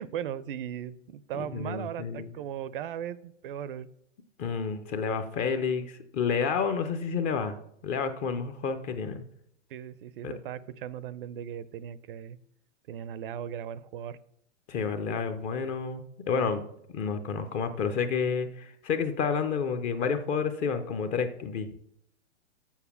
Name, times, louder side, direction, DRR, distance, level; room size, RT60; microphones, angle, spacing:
voice 1, 0.0-3.9 9.7-12.4 12.9-14.2, right 9 dB, 50° right, 17 dB, 0.5 m, -37 dB
voice 2, 1.4-2.3 4.4-7.6 7.8-9.2 10.2-10.3 14.7-16.6 16.9-21.7, left 6 dB, 20° left, 8 dB, 0.5 m, -30 dB
7.2 x 6.5 x 7.0 m, 0.73 s
hypercardioid pair, 135°, 36 cm